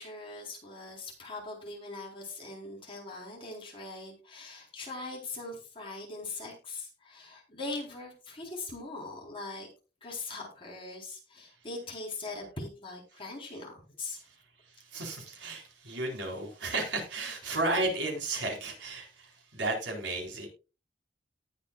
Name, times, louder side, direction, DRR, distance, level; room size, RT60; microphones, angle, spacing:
voice 1, 0.0-9.7 10.0-14.2, left 3 dB, 30° left, -1 dB, 4.0 m, -41 dB
voice 2, 14.7-20.5, right 2 dB, 85° right, 0 dB, 4.2 m, -33 dB
18.5 x 6.2 x 2.4 m, 0.32 s
head